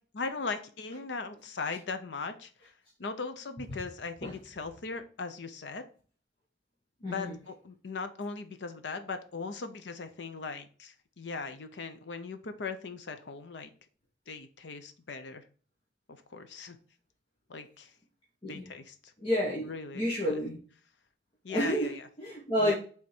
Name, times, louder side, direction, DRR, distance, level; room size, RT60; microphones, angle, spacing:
voice 1, 0.1-2.7 3.0-5.8 7.0-13.7 14.3-15.4 16.3-16.8 17.5-17.9 18.4-19.1 19.6-20.4 21.4-22.1 22.6-22.7, left 4 dB, 85° left, 9 dB, 0.7 m, -39 dB
voice 2, 7.0-7.3 18.4-18.7 19.2-20.5 21.5-21.9 22.2-22.7, equal, 30° left, -3 dB, 1.2 m, -30 dB
6.0 x 3.6 x 4.4 m, 0.41 s
head